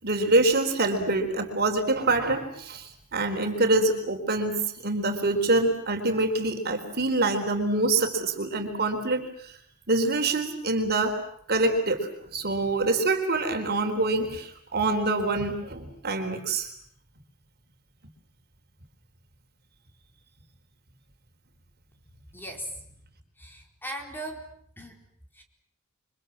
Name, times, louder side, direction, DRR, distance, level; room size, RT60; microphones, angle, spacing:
voice 1, 0.0-9.5 9.9-11.2 11.5-16.7, right 2 dB, 50° right, 5 dB, 4.2 m, -25 dB
voice 2, 22.3-22.8 23.4-24.5 24.8-25.0 25.3-25.4, right 1 dB, 10° left, 3 dB, 4.5 m, -38 dB
28.5 x 25.5 x 7.7 m, 0.66 s
head